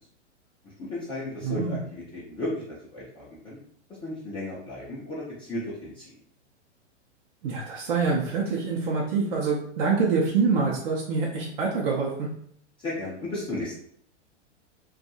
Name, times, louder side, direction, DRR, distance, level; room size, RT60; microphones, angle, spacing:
voice 1, 0.6-3.6 4.0-6.1 12.8-13.8, left 1 dB, 15° left, -8 dB, 0.5 m, -34 dB
voice 2, 1.4-1.8 7.4-12.3, right 4 dB, 50° right, -3 dB, 0.6 m, -25 dB
2.6 x 2.3 x 2.6 m, 0.65 s
figure-of-eight pair, 100°, 36 cm